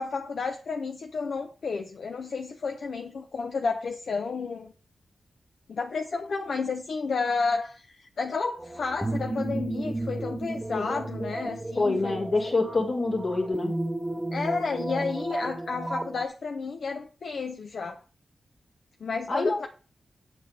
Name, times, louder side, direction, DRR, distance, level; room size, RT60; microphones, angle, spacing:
voice 1, 0.0-4.7 5.7-12.3 14.3-18.0 19.0-19.7, left 4 dB, 70° left, 5 dB, 0.7 m, -31 dB
sound 1, 8.6-16.3, right 1 dB, 15° right, 0.5 m, -33 dB
voice 2, 11.8-13.8 19.3-19.7, left 3 dB, 50° left, 2 dB, 2.0 m, -26 dB
8.7 x 6.8 x 3.4 m, 0.37 s
wide cardioid pair, 105°, 0 cm